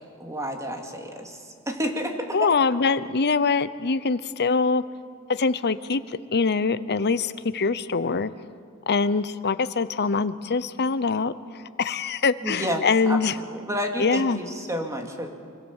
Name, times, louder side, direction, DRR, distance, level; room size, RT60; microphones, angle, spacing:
voice 1, 0.2-2.4 12.4-15.3, equal, 15° right, 3 dB, 2.4 m, -30 dB
voice 2, 2.3-4.8 5.3-8.3 8.9-11.3 11.8-13.3 14.0-14.4, left 4 dB, 50° left, 14 dB, 0.8 m, -23 dB
25.5 x 24.5 x 7.4 m, 2.2 s
head